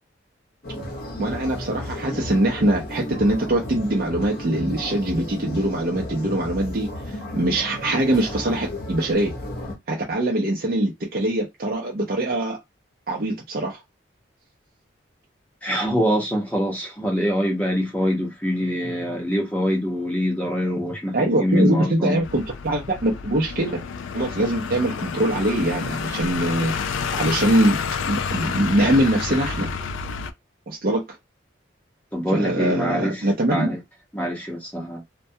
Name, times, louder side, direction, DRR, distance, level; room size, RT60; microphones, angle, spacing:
sound 1, 0.6-9.8, left 1 dB, 50° left, 0.7 m, -33 dB
voice 1, 1.2-9.3 9.9-12.6 13.1-13.8 21.1-23.8 24.1-26.7 27.1-27.8 28.1-29.7 30.7-31.0 32.3-33.7, right 1 dB, 50° right, 0.5 m, -23 dB
voice 2, 15.6-22.2 32.1-33.8 34.1-35.0, equal, 10° left, 0.7 m, -24 dB
sound 2, 22.2-30.3, left 6 dB, 85° left, 0.3 m, -29 dB
2.2 x 2.1 x 2.7 m
head